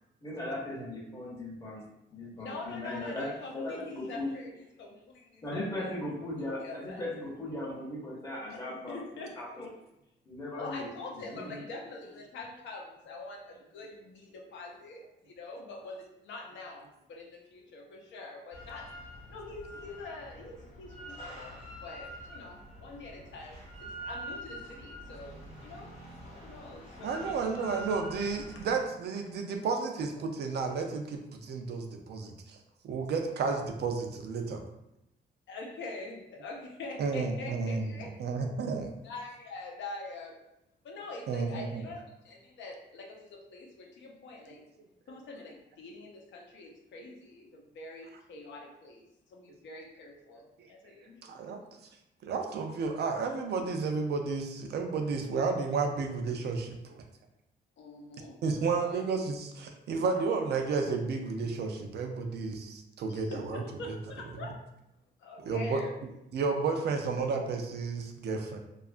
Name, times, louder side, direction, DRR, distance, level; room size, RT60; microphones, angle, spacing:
voice 1, 0.2-4.3 5.4-9.0 9.4-9.7 10.3-10.9 11.1-11.6, left 1 dB, 20° left, -4 dB, 0.7 m, -38 dB
voice 2, 2.4-5.9 6.6-7.0 8.5-8.6 8.9-9.3 10.6-19.0 19.3-25.9 26.4-27.4 28.6-28.7 35.5-38.2 39.0-40.4 40.8-44.6 45.1-49.0 49.3-51.1 51.5-51.6 57.8-58.3 58.7-59.1 63.1-64.6 65.2-65.9, left 3 dB, 80° left, 0 dB, 0.6 m, -45 dB
Drill, 18.5-28.8, equal, 35° left, 1.0 m, -45 dB
voice 3, 27.0-32.6 32.8-34.6 37.0-37.9 38.2-38.9 41.3-41.8 51.2-51.6 52.2-57.0 58.4-63.9 65.5-65.8 66.3-68.6, right 4 dB, 60° right, 3 dB, 0.4 m, -32 dB
2.7 x 2.3 x 2.4 m, 0.87 s
wide cardioid pair, 155°, 19 cm